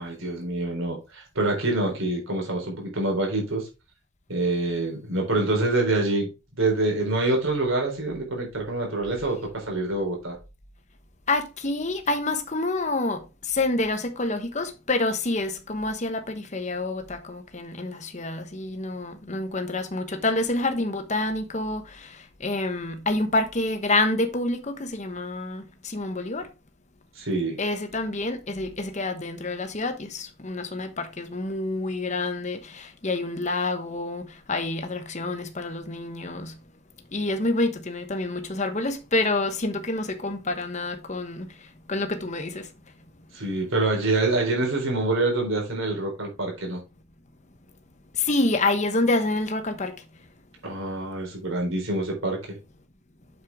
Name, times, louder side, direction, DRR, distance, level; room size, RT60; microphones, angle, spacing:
voice 1, 0.0-3.7 4.3-10.4 27.2-27.6 43.3-46.8 50.6-52.6, right 2 dB, 65° right, 4.0 m, -26 dB
voice 2, 11.3-26.5 27.6-36.6 37.1-42.7 48.1-50.0, left 2 dB, 35° left, 1.1 m, -28 dB
7.8 x 6.7 x 3.6 m
head